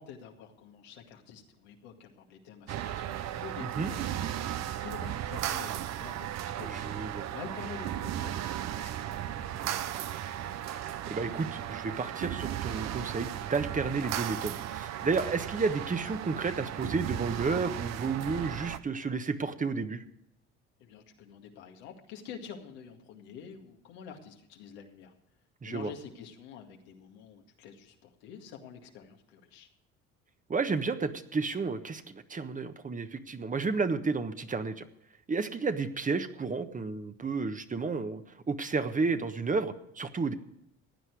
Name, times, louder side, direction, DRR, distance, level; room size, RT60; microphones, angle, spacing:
voice 1, 0.0-10.0 20.8-25.1 25.6-29.7, left 7 dB, 90° left, 2 dB, 2.1 m, -48 dB
sound 1, 2.7-18.8, right 11 dB, 60° right, 0.8 m, -36 dB
voice 2, 3.6-3.9 6.6-7.2 11.1-20.0 25.6-25.9 30.5-34.9 35.3-40.3, right 4 dB, 25° right, 9 dB, 1.2 m, -32 dB
15.5 x 9.9 x 4.8 m, 0.78 s
supercardioid pair, 75°, 31 cm